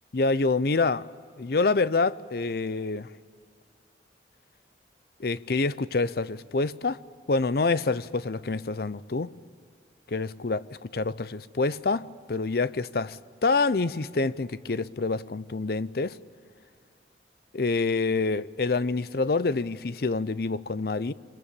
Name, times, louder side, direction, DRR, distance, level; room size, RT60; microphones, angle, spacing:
voice 1, 0.1-1.1 1.4-3.1 5.2-7.0 7.3-9.3 10.1-16.2 17.5-21.1, left 3 dB, 55° left, 0.6 m, -27 dB
25.5 x 22.0 x 8.7 m
head